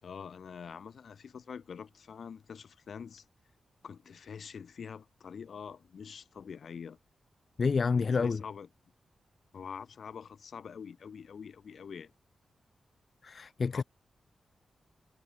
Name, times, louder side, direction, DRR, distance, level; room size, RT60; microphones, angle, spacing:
voice 1, 0.0-3.2 3.8-7.0 7.9-8.7 9.5-12.1 13.7-13.8, left 6 dB, 70° left, 2.5 m, -45 dB
voice 2, 7.6-8.4 13.2-13.8, left 5 dB, 55° left, 0.5 m, -28 dB
cardioid pair, 65°, 0 cm